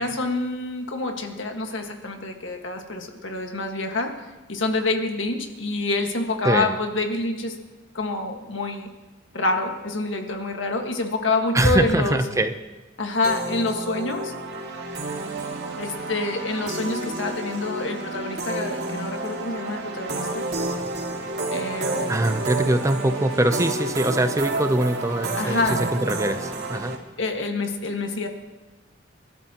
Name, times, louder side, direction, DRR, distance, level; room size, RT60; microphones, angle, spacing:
voice 1, 0.0-4.1 4.5-7.5 7.9-8.9 9.3-12.2 13.0-14.3 15.8-20.4 21.5-22.2 25.3-25.8 27.2-28.3, left 2 dB, 85° left, 4 dB, 1.7 m, -27 dB
voice 2, 6.4-6.8 11.5-12.5 22.1-27.0, right 1 dB, 15° right, 9 dB, 0.7 m, -23 dB
sound 1, 13.2-27.0, right 2 dB, 65° right, 2.1 m, -30 dB
29.0 x 12.5 x 3.0 m, 1.1 s
head